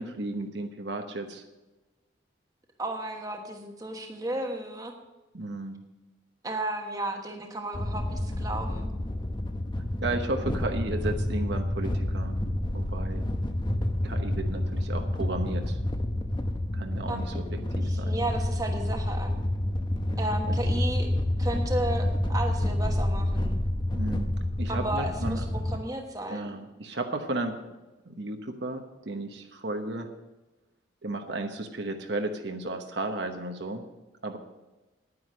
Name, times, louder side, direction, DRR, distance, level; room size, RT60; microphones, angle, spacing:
voice 1, 0.0-1.4 5.3-5.8 10.0-12.3 12.7-13.3 14.0-15.8 16.7-17.4 17.8-18.2 20.1-20.3 23.9-24.3 24.6-25.4 26.3-27.6 28.0-30.1 31.0-33.8 34.2-34.4, right 2 dB, 65° right, 5 dB, 1.0 m, -34 dB
voice 2, 2.8-5.0 6.4-8.9 17.1-17.4 17.8-19.3 20.2-21.1 21.4-23.6 24.7-26.6, right 1 dB, 20° right, 3 dB, 1.2 m, -34 dB
sound 1, 7.7-25.8, left 1 dB, 25° left, 0.8 m, -29 dB
10.0 x 9.7 x 6.2 m, 1.1 s
head